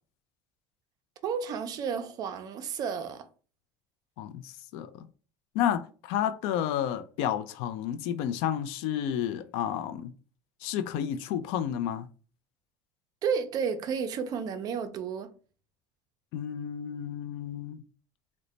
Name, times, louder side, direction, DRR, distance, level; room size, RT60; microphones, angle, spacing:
voice 1, 1.2-3.3 13.2-15.3, right 6 dB, 40° right, 0.4 m, -32 dB
voice 2, 4.2-5.1 5.5-10.1 10.6-12.1 16.3-17.8, left 10 dB, 70° left, 0.4 m, -31 dB
3.1 x 2.1 x 3.9 m
cardioid pair, 155°, 11 cm